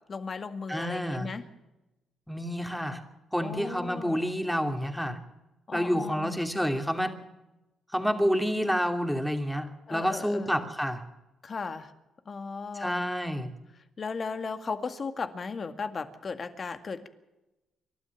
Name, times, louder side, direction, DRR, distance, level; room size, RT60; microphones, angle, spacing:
voice 1, 0.1-1.5 3.4-4.3 5.7-6.4 9.9-10.7 11.4-11.9 12.3-13.1 14.0-17.1, left 4 dB, 40° left, 9 dB, 2.0 m, -36 dB
voice 2, 0.7-1.3 2.3-3.0 3.3-5.2 5.7-7.2 7.9-11.0 12.7-13.5, equal, ahead, 5 dB, 2.8 m, -29 dB
28.5 x 12.5 x 7.3 m, 0.99 s
cardioid pair, 90°, 0 cm